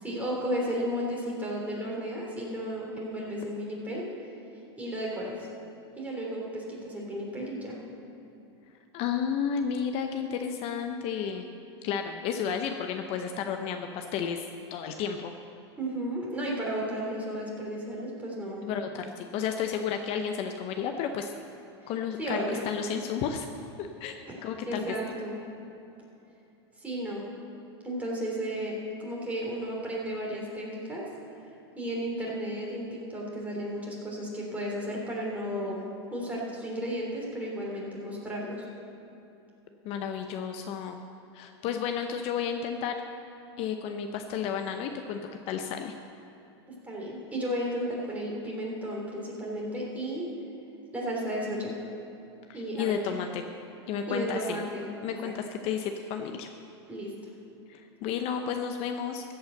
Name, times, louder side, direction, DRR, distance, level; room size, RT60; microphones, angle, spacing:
voice 1, 0.0-4.0 4.8-5.5 5.9-7.8 15.8-18.6 21.8-21.9 22.2-22.7 24.3-24.4 24.7-25.4 26.8-27.2 27.8-31.0 31.7-35.8 36.1-38.6 46.8-50.3 50.9-51.8 52.5-53.2 54.1-55.3 56.9-57.1, equal, 10° right, -3 dB, 3.3 m, -33 dB
voice 2, 8.9-11.5 11.8-14.4 14.7-15.3 18.7-21.3 21.9-23.5 23.8-24.1 24.4-24.9 39.8-41.0 41.3-43.0 43.6-45.2 45.5-45.9 52.5-53.4 53.9-54.6 55.0-56.5 57.7-59.2, left 7 dB, 45° left, 5 dB, 0.7 m, -32 dB
14.5 x 5.6 x 7.7 m, 2.9 s
hypercardioid pair, 120°, 14 cm